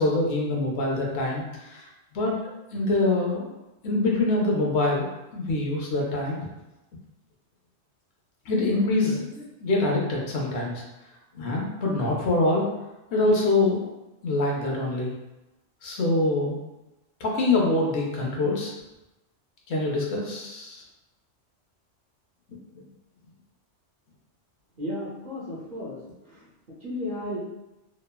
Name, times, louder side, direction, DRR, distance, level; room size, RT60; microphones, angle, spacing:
voice 1, 0.0-1.8 2.1-3.6 3.8-5.1 5.3-6.4 8.5-10.8 11.3-12.7 13.1-13.8 14.2-15.1 15.8-16.6 17.2-18.7 19.7-20.8 22.7-22.8, left 2 dB, 65° left, -2 dB, 0.9 m, -25 dB
voice 2, 24.8-26.4 26.8-27.4, left 1 dB, 55° right, -6 dB, 0.7 m, -34 dB
3.0 x 2.2 x 2.2 m, 0.98 s
omnidirectional pair, 1.2 m